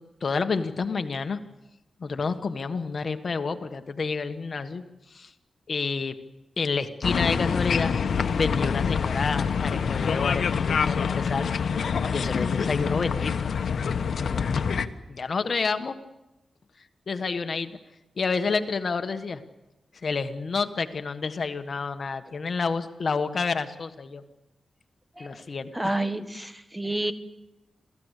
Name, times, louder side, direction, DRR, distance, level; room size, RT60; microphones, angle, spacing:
voice 1, 0.0-1.4 2.0-4.8 5.1-5.3 5.7-6.2 6.6-7.9 8.3-11.5 12.1-13.3 15.1-15.9 17.1-17.8 18.2-19.4 20.0-24.2 25.2-25.7, left 4 dB, 60° left, 9 dB, 1.5 m, -29 dB
sound 1, 7.0-14.9, left 6 dB, 75° left, 1.2 m, -26 dB
voice 2, 25.7-27.1, right 1 dB, 10° right, 10 dB, 1.6 m, -29 dB
27.0 x 17.0 x 8.3 m, 0.99 s
cardioid pair, 75°, 0 cm